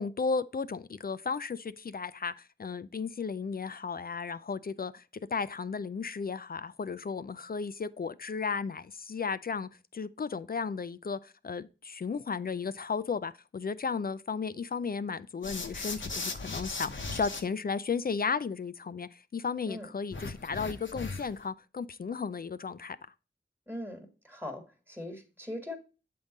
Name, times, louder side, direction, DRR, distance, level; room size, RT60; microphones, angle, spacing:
voice 1, 0.0-2.3 2.6-5.0 5.3-23.0, left 5 dB, 50° left, 0.4 m, -34 dB
sound 1, 15.4-17.4 20.1-21.4, left 3 dB, 75° left, 0.9 m, -38 dB
voice 2, 23.7-25.8, left 1 dB, 10° right, 1.5 m, -41 dB
7.6 x 3.7 x 4.0 m
wide cardioid pair, 45°, 20 cm